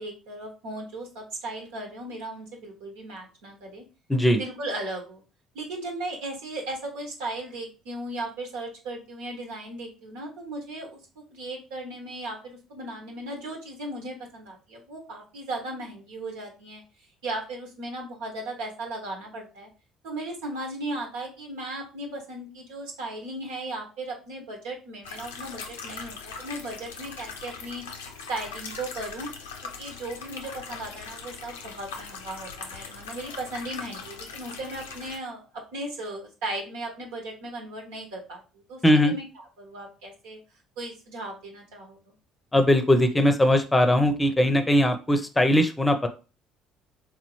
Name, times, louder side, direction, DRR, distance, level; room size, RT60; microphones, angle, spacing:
voice 1, 0.0-3.8 4.4-5.2 5.5-16.8 17.2-19.7 20.0-27.9 28.3-29.3 29.6-35.4 35.7-38.4 38.7-39.3 39.6-40.4 40.8-42.1, right 2 dB, 75° right, 1 dB, 1.2 m, -36 dB
voice 2, 4.1-4.4 38.8-39.1 42.5-46.1, left 1 dB, 15° left, 7 dB, 0.7 m, -20 dB
sound 1, 25.0-35.2, left 5 dB, 85° left, 0.5 m, -40 dB
3.6 x 3.0 x 3.1 m, 0.33 s
hypercardioid pair, 55°, 0 cm